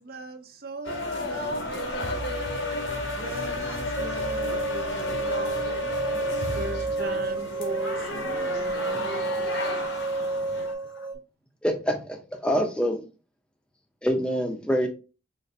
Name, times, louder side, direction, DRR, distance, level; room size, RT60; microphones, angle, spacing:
voice 1, 0.0-2.2 3.2-5.8 6.5-9.3 10.6-10.7, right 3 dB, 50° right, 0.5 m, -38 dB
sound 1, 0.8-10.7, left 2 dB, 80° left, 0.9 m, -33 dB
voice 2, 1.2-3.1 4.8-7.3 8.2-10.1 10.9-11.1, equal, 55° left, 0.7 m, -39 dB
sound 2, 4.0-11.1, right 3 dB, 20° right, 1.0 m, -30 dB
voice 3, 11.6-13.0 14.0-14.9, equal, 5° left, 0.5 m, -25 dB
4.0 x 2.5 x 3.2 m
head